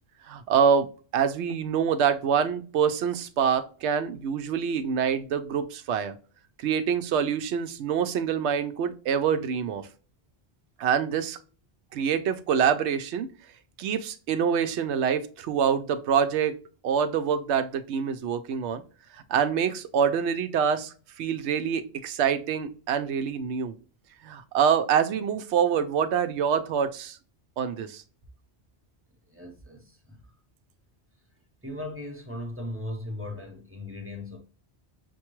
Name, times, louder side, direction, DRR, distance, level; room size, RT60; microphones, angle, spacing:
voice 1, 0.3-0.9 1.1-6.1 6.6-9.9 10.8-11.4 11.9-13.3 13.8-16.5 16.8-18.8 19.3-23.7 24.2-27.2 27.6-28.0, right 7 dB, 85° right, 0.9 m, -25 dB
voice 2, 29.3-30.2 31.6-34.4, left 1 dB, 15° right, 0.8 m, -37 dB
6.4 x 2.3 x 3.0 m
omnidirectional pair, 1.1 m